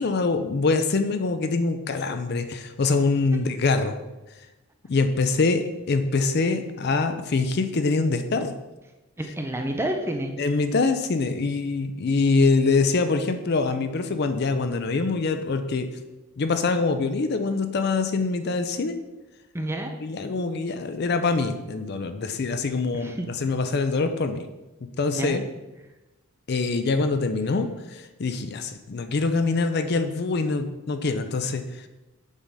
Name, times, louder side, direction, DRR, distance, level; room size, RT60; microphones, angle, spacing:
voice 1, 0.0-3.9 4.9-8.5 10.4-15.9 16.4-19.0 20.0-24.4 25.0-25.4 26.5-31.9, left 3 dB, 50° left, 8 dB, 0.5 m, -24 dB
voice 2, 9.2-10.3 19.5-19.9 22.9-23.3 25.1-25.4, right 1 dB, 10° right, 4 dB, 0.5 m, -29 dB
7.2 x 3.7 x 5.3 m, 1.0 s
head